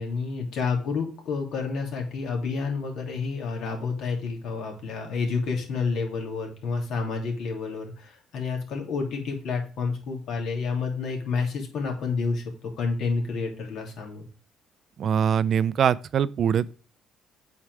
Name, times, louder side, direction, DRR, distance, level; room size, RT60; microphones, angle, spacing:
voice 1, 0.0-12.4 12.8-14.3, left 4 dB, 60° left, 2.8 m, -29 dB
voice 2, 15.0-16.7, right 8 dB, 45° right, 0.4 m, -23 dB
8.3 x 4.5 x 4.7 m
cardioid pair, 140°, 0 cm